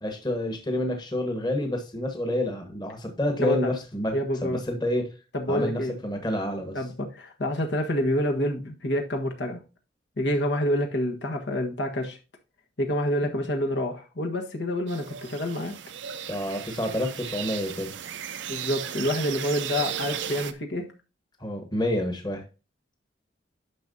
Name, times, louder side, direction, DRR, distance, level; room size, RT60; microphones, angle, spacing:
voice 1, 0.0-4.1 4.4-5.1 5.5-6.8 16.3-17.9 21.4-22.4, left 1 dB, 25° left, 1.3 m, -28 dB
voice 2, 3.4-3.7 4.1-4.6 5.3-5.9 6.7-9.6 10.2-12.2 12.8-15.7 18.5-20.9, equal, 70° left, 1.4 m, -27 dB
sound 1, 14.9-20.5, right 9 dB, 80° right, 0.6 m, -35 dB
10.0 x 6.0 x 2.7 m
head